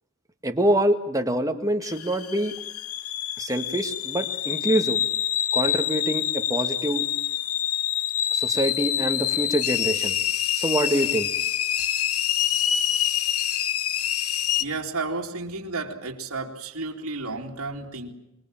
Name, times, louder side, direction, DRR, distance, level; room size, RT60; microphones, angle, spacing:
voice 1, 0.4-2.5 3.4-5.0 5.5-7.1 8.3-10.2 10.5-11.3, right 1 dB, 15° right, 6 dB, 1.9 m, -25 dB
sound 1, 1.8-14.6, left 11 dB, 75° left, 1.1 m, -26 dB
voice 2, 14.6-18.1, right 3 dB, 85° right, -1 dB, 2.7 m, -32 dB
26.0 x 21.0 x 9.0 m, 0.85 s
head